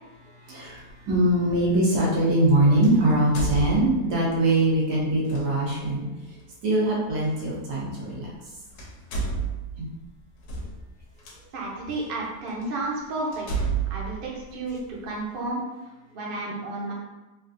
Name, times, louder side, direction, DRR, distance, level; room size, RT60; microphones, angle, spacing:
voice 1, 0.4-6.3 6.6-8.3 9.8-9.9, right 1 dB, 90° right, -5 dB, 1.5 m, -22 dB
sound 1, 0.8-0.9 2.8-4.3 5.2-5.4 7.3-7.4 8.3-8.5 8.8-11.4 12.0-12.1 12.6-12.7 13.3-15.1, right 5 dB, 80° left, 1.2 m, -31 dB
voice 2, 11.5-14.8 15.0-15.6 16.1-16.9, right 2 dB, 50° right, -3 dB, 0.7 m, -32 dB
3.6 x 2.4 x 2.5 m, 1.1 s
omnidirectional pair, 1.7 m